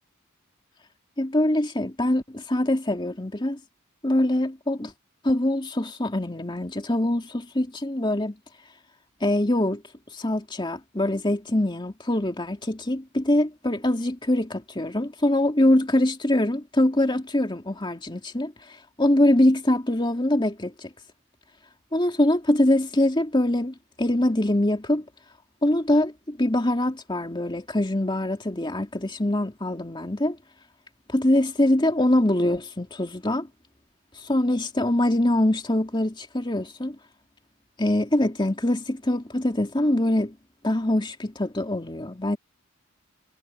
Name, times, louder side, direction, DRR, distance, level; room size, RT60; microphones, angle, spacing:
voice 1, 1.2-3.6 4.0-4.9 5.2-8.4 9.2-9.8 10.1-20.9 21.9-25.0 25.6-30.4 31.1-33.5 34.2-37.0 37.8-40.4 40.6-42.4, left 1 dB, 25° left, 2.7 m, -23 dB
head